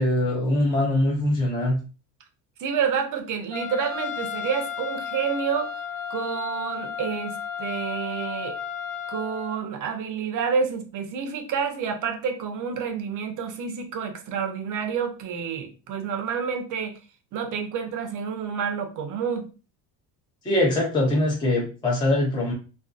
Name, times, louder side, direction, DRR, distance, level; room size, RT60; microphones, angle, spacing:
voice 1, 0.0-1.8 20.4-22.5, left 1 dB, 10° left, -3 dB, 0.5 m, -22 dB
voice 2, 2.6-5.8 6.1-8.6 9.1-17.0 17.3-19.5, right 6 dB, 45° right, 6 dB, 0.5 m, -29 dB
Trumpet, 3.5-9.6, left 7 dB, 55° left, 0.7 m, -33 dB
2.5 x 2.3 x 2.3 m, 0.34 s
cardioid pair, 140°, 43 cm